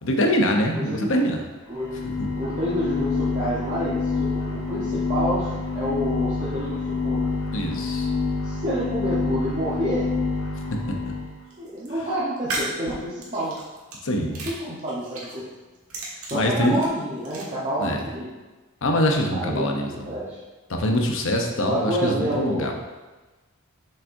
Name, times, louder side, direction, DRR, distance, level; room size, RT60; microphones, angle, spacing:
voice 1, 0.0-1.4 7.5-8.1 14.0-14.5 16.3-16.8 17.8-18.0 18.8-20.1 20.7-22.7, equal, 60° left, 2 dB, 0.8 m, -23 dB
voice 2, 0.7-1.1 1.7-2.0 2.4-5.5 5.7-7.3 8.4-10.0 11.6-13.5 14.3-15.4 16.2-18.3 19.4-20.4 21.6-22.7, equal, 30° right, -9 dB, 1.1 m, -28 dB
sound 1, 1.7-11.4, left 4 dB, 85° left, 1.3 m, -27 dB
sound 2, 11.5-11.9 12.4-14.0 14.3-15.4 15.7-17.4, right 2 dB, 65° right, 1.6 m, -34 dB
7.1 x 5.5 x 2.7 m, 1.2 s
head